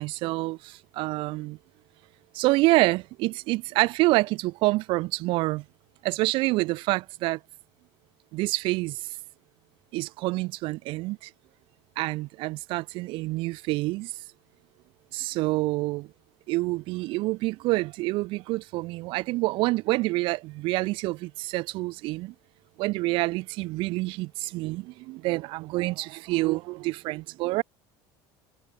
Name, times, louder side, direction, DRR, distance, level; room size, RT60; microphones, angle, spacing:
voice 1, 0.0-1.6 2.3-5.6 6.0-7.4 8.3-9.0 9.9-11.3 12.0-14.1 15.1-16.1 16.5-22.3 22.8-27.6, right 21 dB, 60° right, 3.7 m, -27 dB
cardioid pair, 155°, 10 cm